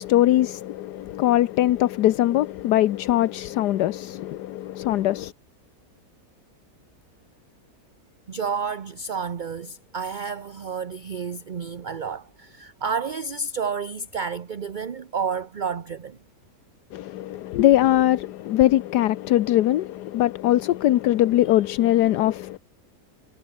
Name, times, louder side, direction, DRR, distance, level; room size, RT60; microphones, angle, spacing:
voice 1, 0.0-5.3 16.9-22.6, left 14 dB, 80° left, 1.3 m, -21 dB
voice 2, 8.3-16.2, right 5 dB, 45° right, 0.7 m, -30 dB
omnidirectional pair, 1.8 m